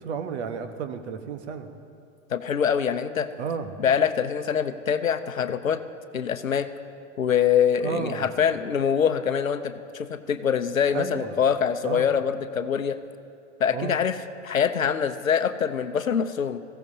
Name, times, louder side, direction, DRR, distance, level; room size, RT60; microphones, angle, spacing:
voice 1, 0.0-1.7 3.4-3.8 7.8-8.3 10.9-11.4 11.8-12.1 13.7-14.0, right 6 dB, 55° right, 7 dB, 1.3 m, -32 dB
voice 2, 2.3-3.3 3.8-5.8 6.1-6.7 7.2-13.0 13.6-14.2 14.4-16.6, left 7 dB, 90° left, 10 dB, 0.7 m, -24 dB
22.0 x 15.5 x 2.8 m, 2.4 s
figure-of-eight pair, 100°, 39 cm